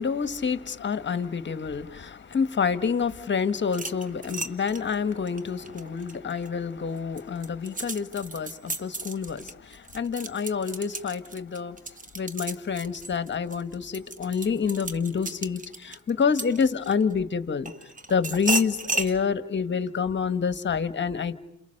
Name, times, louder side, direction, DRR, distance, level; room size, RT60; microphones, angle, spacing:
voice 1, 0.0-11.8 12.1-17.7 18.1-21.3, left 6 dB, 40° left, 1.5 m, -28 dB
sound 1, 3.6-6.5 7.0-17.1 17.7-19.1, right 3 dB, 25° right, 1.5 m, -34 dB
29.0 x 28.0 x 6.6 m
cardioid pair, 90°, 30 cm